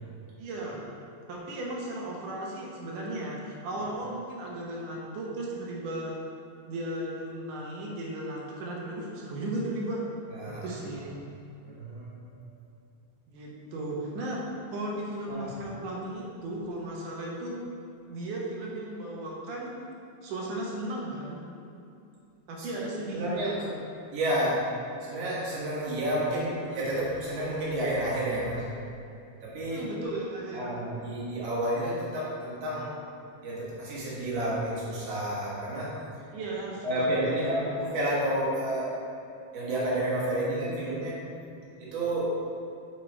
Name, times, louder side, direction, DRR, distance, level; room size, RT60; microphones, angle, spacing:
voice 1, 0.4-0.8 1.3-6.1 6.7-10.0 10.5-11.1 13.3-14.4 14.7-17.6 18.1-19.8 20.2-21.4 22.5-23.9 29.6-30.8 36.3-37.8, right 1 dB, 75° right, -3 dB, 2.6 m, -35 dB
voice 2, 10.3-10.7 11.6-12.2 15.3-15.5 22.6-22.7 23.1-23.6 24.1-24.6 25.0-28.7 29.4-29.8 30.5-32.9 33.4-35.9 36.8-38.9 39.5-41.2 41.8-42.3, right 1 dB, 55° right, -6 dB, 2.4 m, -30 dB
7.8 x 4.8 x 4.4 m, 2.6 s
omnidirectional pair, 3.8 m